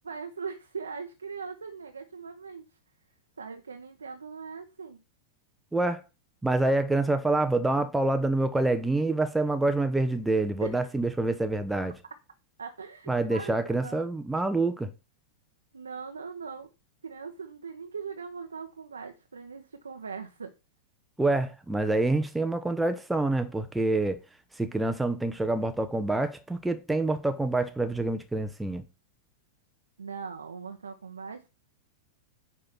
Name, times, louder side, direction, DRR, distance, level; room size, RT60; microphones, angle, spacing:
voice 1, 0.0-2.7 3.4-5.0 10.6-10.8 12.6-14.0 15.7-16.7 17.0-20.5 30.0-31.5, right 5 dB, 75° right, 0.9 m, -40 dB
voice 2, 5.7-6.0 6.4-11.9 13.1-14.9 21.2-24.2 24.6-28.8, right 2 dB, 5° right, 0.9 m, -27 dB
10.0 x 3.8 x 6.0 m
figure-of-eight pair, 95°, 0 cm